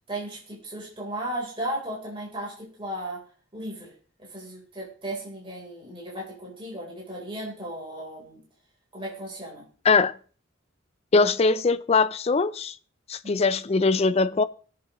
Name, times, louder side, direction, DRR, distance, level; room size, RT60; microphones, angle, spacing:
voice 1, 0.1-2.5 2.8-3.2 3.5-3.9 4.3-8.4 8.9-9.6 13.2-13.5, right 1 dB, 25° right, 3.8 m, -35 dB
voice 2, 11.1-12.7 13.1-14.4, left 4 dB, 30° left, 0.4 m, -21 dB
21.0 x 7.7 x 3.0 m
head